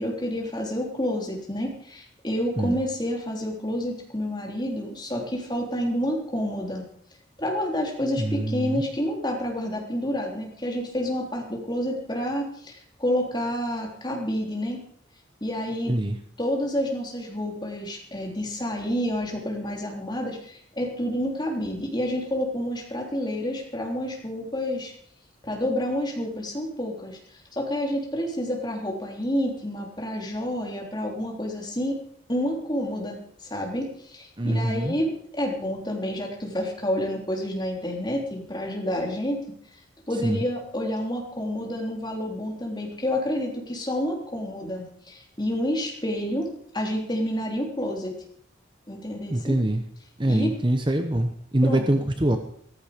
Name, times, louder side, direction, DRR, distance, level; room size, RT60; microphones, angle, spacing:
voice 1, 0.0-6.9 7.4-14.8 15.4-16.0 16.4-24.9 25.4-32.0 32.3-39.4 40.1-48.2 48.9-49.6 50.3-50.6 51.6-52.0, equal, 20° left, 0 dB, 3.6 m, -29 dB
voice 2, 8.2-8.8 15.9-16.2 34.4-35.0 40.2-40.4 49.3-49.8 50.2-52.4, right 1 dB, 25° right, 6 dB, 0.9 m, -24 dB
15.0 x 14.5 x 5.1 m, 0.64 s
head